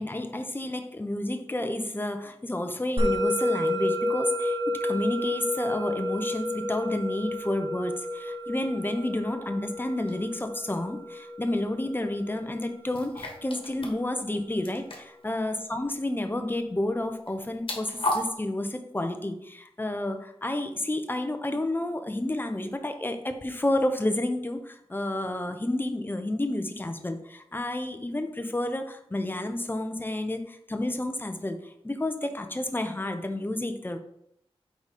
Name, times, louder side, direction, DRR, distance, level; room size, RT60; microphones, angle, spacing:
voice 1, 0.0-34.0, left 1 dB, 20° left, 7 dB, 0.8 m, -30 dB
Musical instrument, 3.0-13.6, left 1 dB, 50° right, 1.6 m, -31 dB
sound 1, 10.1-10.2 12.9-13.9 14.2-14.4 14.6-15.3 17.2-18.2, left 1 dB, 55° left, 1.5 m, -33 dB
4.9 x 4.0 x 5.1 m, 0.74 s
wide cardioid pair, 80°, 11 cm